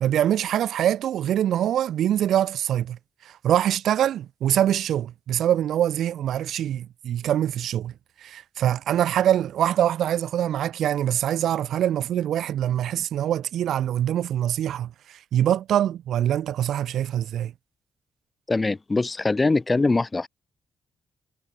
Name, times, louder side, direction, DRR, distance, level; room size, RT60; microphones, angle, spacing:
voice 1, 0.0-3.0 3.2-7.9 8.2-17.5, right 11 dB, 80° right, 1.3 m, -24 dB
voice 2, 18.5-20.3, left 3 dB, 25° left, 0.9 m, -22 dB
cardioid pair, 85°, 0 cm